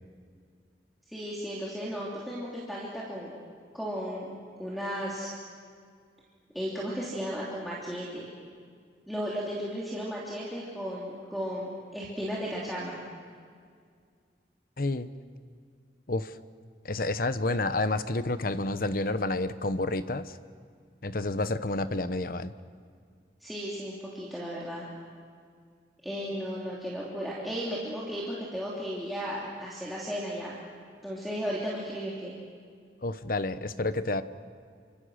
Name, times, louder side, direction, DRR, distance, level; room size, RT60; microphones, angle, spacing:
voice 1, 1.1-3.3 3.7-4.3 4.6-5.3 6.5-8.3 9.1-13.0 23.4-24.9 26.0-30.6 31.0-32.3, equal, ahead, -7 dB, 3.2 m, -35 dB
voice 2, 14.8-15.1 16.1-16.3 16.8-20.3 21.0-22.5 33.0-34.2, left 2 dB, 50° left, 12 dB, 0.9 m, -29 dB
29.5 x 25.5 x 6.5 m, 2.1 s
head